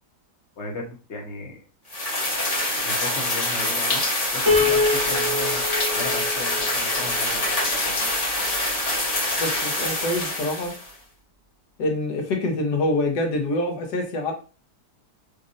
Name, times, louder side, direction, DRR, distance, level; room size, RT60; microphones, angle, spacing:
voice 1, 0.6-1.6 2.7-4.0 4.3-5.6 5.9-7.5 7.8-8.1, left 2 dB, 45° left, -1 dB, 1.3 m, -36 dB
sound 1, 1.9-10.9, left 1 dB, 25° left, 0.9 m, -25 dB
Piano, 4.5-7.7, left 3 dB, 15° right, 0.7 m, -25 dB
voice 2, 7.7-8.1 8.4-8.5 9.4-10.7 11.8-14.3, left 1 dB, 75° left, 2 dB, 1.5 m, -26 dB
5.2 x 2.6 x 2.6 m, 0.34 s
omnidirectional pair, 1.8 m